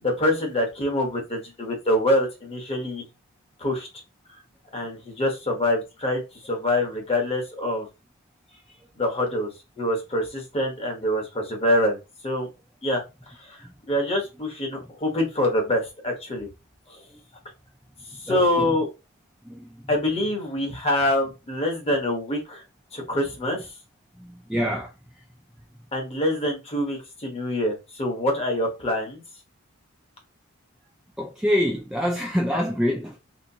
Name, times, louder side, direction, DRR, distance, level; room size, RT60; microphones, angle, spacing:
voice 1, 0.0-3.0 3.6-3.9 4.7-7.9 9.0-9.5 9.8-12.0 12.2-12.5 12.8-13.0 13.5-13.6 13.9-16.5 18.2-18.9 19.9-22.6 22.9-23.7 25.9-29.2, left 1 dB, 30° left, 1.1 m, -25 dB
voice 2, 18.3-18.8 19.4-19.9 24.2-24.9 31.2-33.2, equal, 5° right, 0.4 m, -26 dB
3.1 x 2.9 x 2.7 m
head